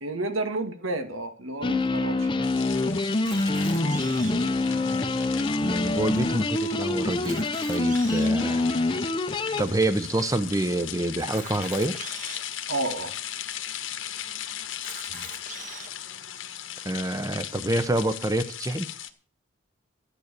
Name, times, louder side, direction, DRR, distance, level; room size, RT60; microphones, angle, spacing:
voice 1, 0.0-2.5 12.7-13.1, right 2 dB, 90° right, 8 dB, 2.1 m, -31 dB
sound 1, 1.6-9.6, left 2 dB, 25° left, 0.8 m, -25 dB
sound 2, 2.4-19.1, left 11 dB, 80° left, 1.4 m, -38 dB
Camera, 3.1-4.5 5.2-5.3 5.5-5.6 6.2-6.3 7.1-8.4 9.1-9.2 11.2-12.4 13.2-13.3 13.5-13.6 14.7-15.9, right 5 dB, 40° right, 1.9 m, -42 dB
voice 2, 5.6-7.4 7.7-8.7 9.6-11.9 15.1-15.2 16.8-18.9, right 1 dB, 15° right, 13 dB, 0.9 m, -27 dB
13.5 x 9.3 x 6.8 m, 0.41 s
head